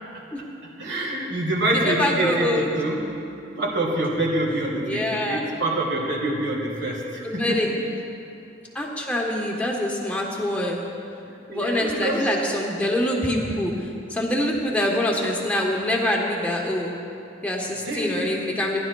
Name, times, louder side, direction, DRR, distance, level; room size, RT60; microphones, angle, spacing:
voice 1, 0.8-3.0 3.6-7.6 11.5-12.2 17.8-18.4, right 1 dB, 60° right, -2 dB, 1.9 m, -26 dB
voice 2, 1.7-2.7 4.8-5.4 7.2-7.7 8.7-10.8 11.5-13.7 14.1-16.9 17.4-18.8, left 1 dB, 5° left, -2 dB, 1.2 m, -25 dB
18.0 x 11.5 x 2.3 m, 2.6 s
head